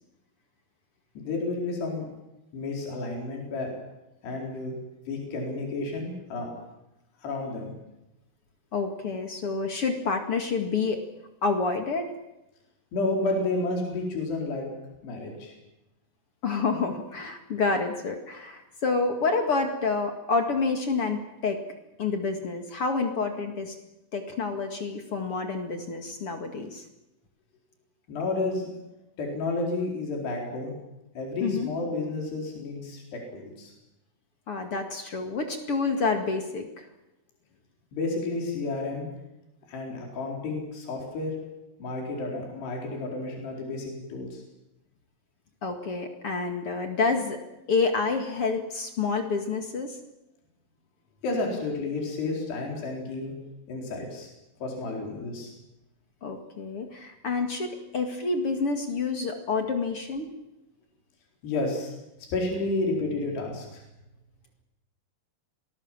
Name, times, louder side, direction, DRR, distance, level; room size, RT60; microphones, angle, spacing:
voice 1, 1.2-2.1 2.5-3.7 4.2-4.7 5.1-6.5 7.2-7.7 12.9-14.7 15.0-15.5 28.1-28.7 29.2-30.7 31.2-33.7 37.9-39.1 39.7-41.4 41.8-44.4 51.2-53.3 53.7-54.3 54.6-55.5 61.4-61.9 62.3-63.8, left 2 dB, 75° left, 0 dB, 6.4 m, -31 dB
voice 2, 8.7-11.0 11.4-12.1 16.4-21.6 22.0-23.7 24.1-26.8 31.4-31.8 34.5-36.9 45.6-47.4 47.7-50.0 56.2-60.3, left 4 dB, 40° left, 5 dB, 2.4 m, -28 dB
27.0 x 19.5 x 7.5 m, 0.94 s
omnidirectional pair, 4.8 m